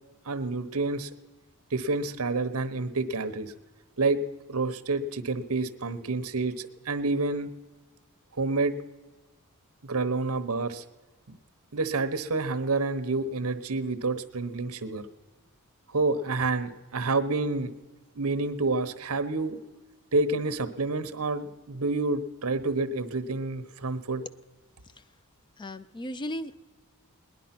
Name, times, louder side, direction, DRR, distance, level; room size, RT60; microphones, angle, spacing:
voice 1, 0.2-1.1 1.7-3.5 4.0-4.2 4.5-7.5 8.3-8.8 9.8-10.8 11.3-11.4 11.7-15.0 15.9-17.7 18.1-19.6 20.1-24.2, right 3 dB, 70° right, 11 dB, 1.0 m, -28 dB
voice 2, 25.6-26.6, left 1 dB, 20° left, 13 dB, 0.4 m, -36 dB
19.5 x 10.5 x 5.9 m, 1.3 s
head